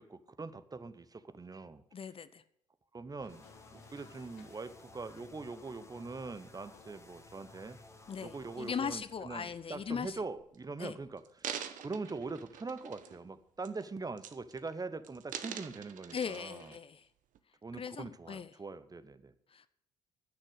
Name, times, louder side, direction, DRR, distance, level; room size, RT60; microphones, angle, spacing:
voice 1, 0.0-1.8 2.9-3.4 3.7-7.8 8.2-16.7 17.6-19.3, right 3 dB, 25° right, 14 dB, 0.8 m, -43 dB
voice 2, 1.9-2.4 8.1-10.2 10.8-10.9 16.1-17.1 17.8-18.5 19.5-19.7, left 6 dB, 35° left, 14 dB, 0.6 m, -39 dB
sound 1, 3.2-10.3, left 9 dB, 75° left, 1.0 m, -63 dB
sound 2, 3.3-8.8, left 2 dB, 20° left, 1.6 m, -56 dB
sound 3, 10.4-10.6 11.2-13.3 13.6-13.9 14.2-14.7 15.0-16.8 17.3-17.4, right 9 dB, 60° right, 0.9 m, -44 dB
9.8 x 6.5 x 8.0 m, 0.73 s
hypercardioid pair, 50°, 15 cm